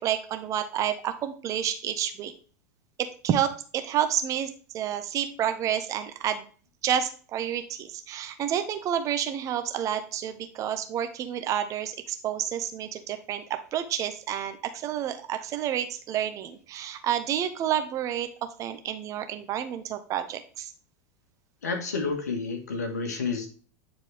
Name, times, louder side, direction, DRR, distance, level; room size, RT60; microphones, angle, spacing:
voice 1, 0.0-2.3 3.0-6.5 6.8-18.3 18.6-20.7, right 10 dB, 40° right, 8 dB, 1.1 m, -29 dB
voice 2, 21.6-23.5, left 4 dB, 75° left, 4 dB, 1.9 m, -30 dB
10.0 x 4.4 x 3.5 m, 0.39 s
figure-of-eight pair, 85°, 9 cm